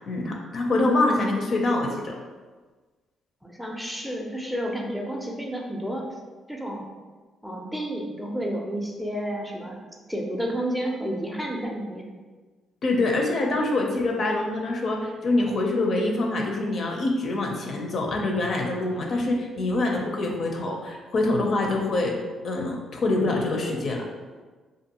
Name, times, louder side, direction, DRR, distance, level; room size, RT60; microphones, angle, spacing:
voice 1, 0.1-2.2 12.8-22.1 22.4-24.0, left 2 dB, 55° left, 1 dB, 0.4 m, -25 dB
voice 2, 3.4-6.0 6.5-6.9 7.4-9.8 10.1-12.0, equal, ahead, 0 dB, 0.4 m, -31 dB
2.6 x 2.4 x 2.8 m, 1.4 s
cardioid pair, 90°, 0 cm